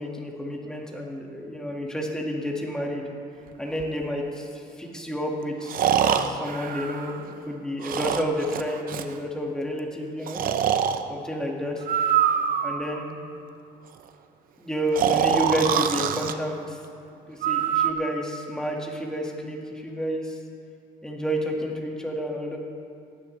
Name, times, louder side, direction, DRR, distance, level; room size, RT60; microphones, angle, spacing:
voice 1, 0.0-3.0 3.6-10.4 11.1-11.8 12.6-13.1 14.6-16.8 17.3-20.4 21.0-22.6, equal, 5° left, -1 dB, 1.8 m, -30 dB
Breathing, 3.8-3.9 5.7-7.4 7.8-9.1 10.3-11.0 11.8-13.0 15.0-16.3 17.4-17.9, right 9 dB, 60° right, 0.7 m, -24 dB
18.0 x 9.7 x 3.3 m, 2.6 s
cardioid pair, 110°, 17 cm